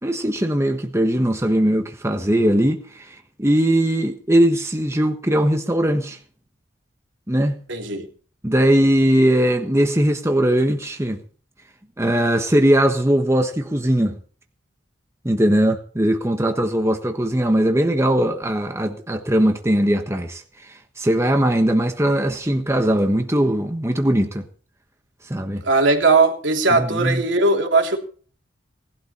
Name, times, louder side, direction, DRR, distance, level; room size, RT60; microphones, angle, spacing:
voice 1, 0.0-6.2 7.3-7.5 8.4-11.2 12.0-14.2 15.2-24.4 25.2-25.6 26.7-27.2, right 1 dB, 15° right, 1.3 m, -20 dB
voice 2, 7.7-8.1 25.6-28.0, right 3 dB, 75° right, 3.2 m, -18 dB
19.0 x 12.0 x 4.4 m
head